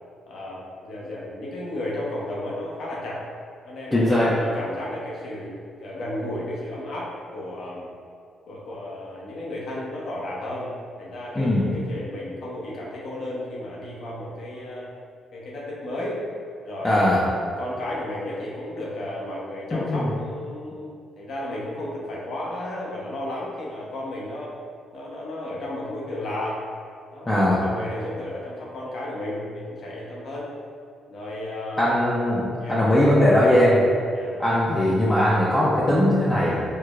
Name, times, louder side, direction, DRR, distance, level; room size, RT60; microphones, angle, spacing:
voice 1, 0.3-3.2 3.6-7.9 8.5-10.7 11.0-14.9 15.3-16.2 16.6-24.5 24.9-26.6 27.1-30.5 31.1-32.0 32.6-32.8 34.1-34.4, left 1 dB, 65° left, -5 dB, 0.8 m, -33 dB
voice 2, 3.9-4.4 11.4-11.7 16.8-17.2 19.7-20.1 27.3-27.6 31.8-33.8 34.4-36.6, left 1 dB, 20° left, -7 dB, 0.5 m, -20 dB
4.6 x 2.1 x 2.4 m, 2.2 s
cardioid pair, 90°, 0 cm